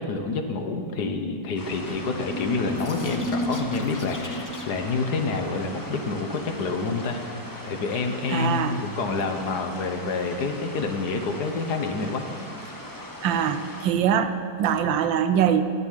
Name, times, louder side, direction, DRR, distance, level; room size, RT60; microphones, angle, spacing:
voice 1, 0.0-7.2 7.6-12.3, left 3 dB, 60° left, 5 dB, 1.5 m, -28 dB
sound 1, 1.6-13.9, left 1 dB, 10° left, 1.2 m, -40 dB
sound 2, 2.0-4.9, left 1 dB, 30° left, 0.3 m, -32 dB
voice 2, 8.3-8.8 13.2-14.3 14.6-15.7, right 8 dB, 80° right, 10 dB, 1.5 m, -23 dB
11.0 x 9.9 x 9.1 m, 2.4 s
omnidirectional pair, 2.1 m